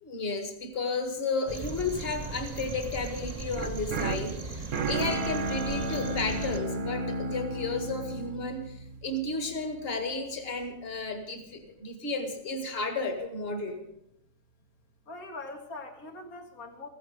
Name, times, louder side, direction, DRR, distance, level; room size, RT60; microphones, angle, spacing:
voice 1, 0.0-13.8, left 3 dB, 45° left, 6 dB, 2.1 m, -33 dB
sound 1, 1.5-6.6, right 3 dB, 30° right, 0.9 m, -38 dB
sound 2, 3.5-9.6, right 2 dB, 85° right, 1.5 m, -33 dB
voice 2, 15.1-16.9, left 2 dB, 85° left, 3 dB, 2.2 m, -42 dB
15.0 x 15.0 x 5.0 m, 0.81 s
omnidirectional pair, 1.5 m